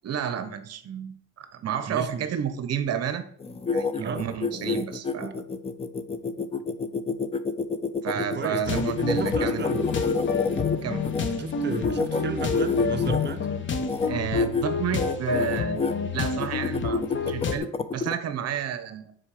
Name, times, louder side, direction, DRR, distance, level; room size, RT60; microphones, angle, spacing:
voice 1, 0.0-3.2 3.7-5.4 8.0-9.7 10.7-11.0 14.1-19.2, right 8 dB, 55° right, 1.0 m, -31 dB
voice 2, 1.9-2.3 4.0-4.2 8.1-10.0 11.2-13.5, right 6 dB, 35° right, 0.6 m, -34 dB
sound 1, 3.4-11.2 11.7-13.4 13.8-14.1 14.3-14.6 15.0-15.9 16.4-18.1, left 4 dB, 20° left, 0.5 m, -28 dB
sound 2, 8.6-17.6, left 5 dB, 40° left, 1.0 m, -29 dB
6.4 x 4.6 x 4.9 m
cardioid pair, 110°, 31 cm